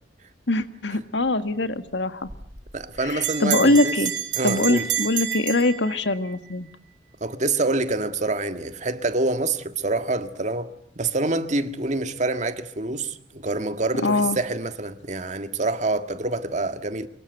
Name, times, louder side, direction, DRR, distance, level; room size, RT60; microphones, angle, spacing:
voice 1, 0.5-2.3 3.0-4.1 4.4-6.7 14.0-14.4, left 2 dB, 75° left, 1.7 m, -22 dB
Bell, 2.3-6.4, right 10 dB, 75° right, 7.1 m, -29 dB
voice 2, 2.7-4.0 4.3-4.9 7.2-17.1, right 2 dB, 40° right, 1.8 m, -26 dB
25.0 x 23.5 x 9.2 m
head